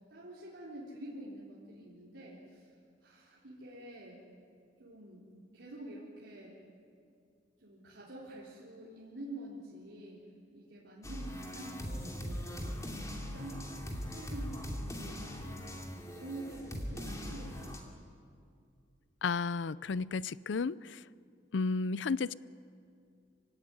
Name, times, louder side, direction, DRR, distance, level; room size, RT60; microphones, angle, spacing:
voice 1, 0.1-2.7 3.0-4.2 4.8-5.2 5.5-6.6 7.6-10.2 10.5-18.0, right 1 dB, 80° right, -6 dB, 3.8 m, -48 dB
sound 1, 11.0-17.8, equal, 20° left, 2.5 m, -40 dB
voice 2, 19.2-21.0 21.5-22.3, left 4 dB, 80° left, 20 dB, 0.5 m, -33 dB
26.5 x 16.5 x 9.7 m, 2.3 s
head